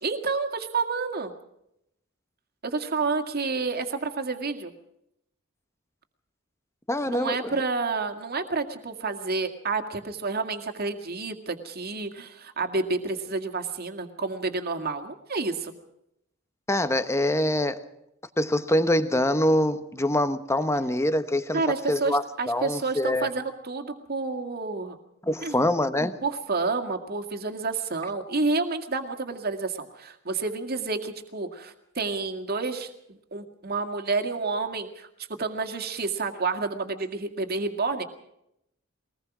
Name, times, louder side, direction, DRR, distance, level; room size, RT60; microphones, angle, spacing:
voice 1, 0.0-1.3 2.6-4.7 7.1-15.7 21.5-25.0 25.4-25.7 26.2-35.1 35.4-38.1, right 3 dB, 50° right, 6 dB, 2.1 m, -29 dB
voice 2, 6.9-7.4 16.7-17.8 18.4-21.6 21.9-23.3 25.2-26.2, left 1 dB, 15° left, 11 dB, 1.1 m, -24 dB
22.5 x 19.5 x 6.1 m, 0.80 s
head